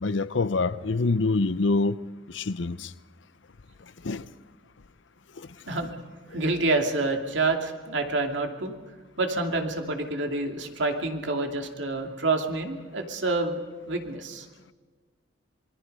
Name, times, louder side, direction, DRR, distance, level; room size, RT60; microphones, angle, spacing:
voice 1, 0.0-2.0 2.3-2.9 4.0-4.3 5.4-5.5, left 3 dB, 70° left, 0.7 m, -25 dB
voice 2, 6.3-8.7 9.2-13.6 13.9-14.5, right 3 dB, 70° right, 2.6 m, -27 dB
27.0 x 22.0 x 5.5 m
head